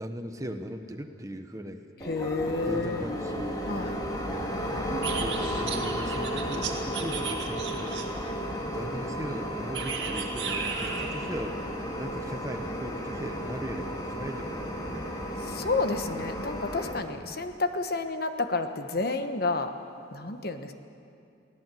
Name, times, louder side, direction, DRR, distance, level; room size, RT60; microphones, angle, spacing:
voice 1, 0.0-1.9 2.7-3.7 4.7-8.4 8.7-15.2 17.2-17.4, equal, 20° right, 6 dB, 1.1 m, -38 dB
sound 1, 2.0-17.0, equal, 20° left, 2.1 m, -33 dB
voice 2, 2.1-3.1 3.7-4.0 15.4-19.7 20.1-20.7, left 3 dB, 55° left, 7 dB, 1.2 m, -30 dB
sound 2, 5.0-8.3 9.7-11.2, right 6 dB, 65° right, 2.2 m, -35 dB
23.0 x 17.0 x 7.7 m, 2.5 s
head